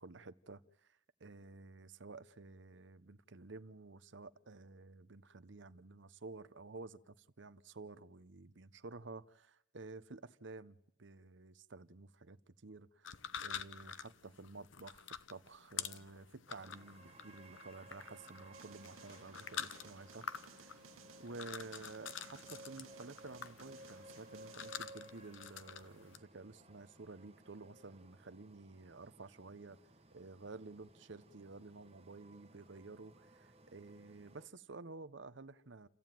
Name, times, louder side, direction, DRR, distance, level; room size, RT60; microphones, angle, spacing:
voice 1, 0.0-13.1 13.4-20.8 21.2-29.8 30.1-35.9, right 3 dB, 65° right, 14 dB, 0.8 m, -52 dB
sound 1, 13.0-26.2, left 8 dB, 70° left, 0.9 m, -48 dB
sound 2, 16.5-34.5, right 1 dB, 30° right, 1.6 m, -59 dB
sound 3, 18.5-24.8, right 6 dB, 90° right, 1.0 m, -59 dB
29.0 x 14.5 x 9.2 m, 0.78 s
head